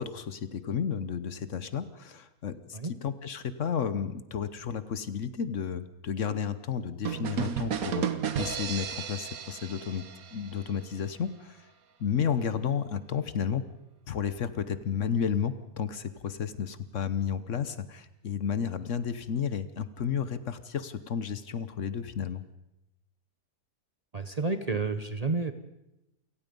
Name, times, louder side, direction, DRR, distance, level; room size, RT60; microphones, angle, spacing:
voice 1, 0.0-8.1 8.4-10.0 10.3-11.7 12.0-13.6 14.1-22.4, left 7 dB, 60° left, 13 dB, 1.2 m, -32 dB
sound 1, 7.0-10.8, right 8 dB, 70° right, 1.5 m, -33 dB
voice 2, 24.1-25.5, right 3 dB, 30° right, 9 dB, 0.9 m, -30 dB
28.5 x 17.0 x 5.3 m, 0.90 s
omnidirectional pair, 1.6 m